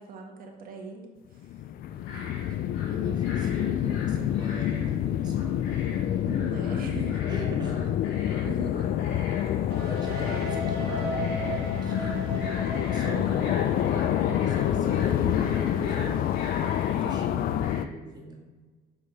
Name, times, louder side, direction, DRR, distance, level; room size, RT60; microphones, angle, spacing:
voice 1, 0.0-1.5 6.2-7.2 8.4-9.0 9.8-9.9 17.0-17.3, right 3 dB, 60° right, 1 dB, 1.6 m, -40 dB
sound 1, 1.3-17.9, left 11 dB, 60° left, 0.4 m, -27 dB
sound 2, 1.8-17.8, left 2 dB, 90° left, 2.4 m, -44 dB
voice 2, 2.9-5.9 7.3-7.9 9.8-12.5 12.9-16.2 16.5-18.5, right 2 dB, 25° right, 0 dB, 1.7 m, -42 dB
sound 3, 9.7-17.4, right 1 dB, 75° right, 1.3 m, -37 dB
5.8 x 5.5 x 5.2 m, 1.3 s
cardioid pair, 110°, 17 cm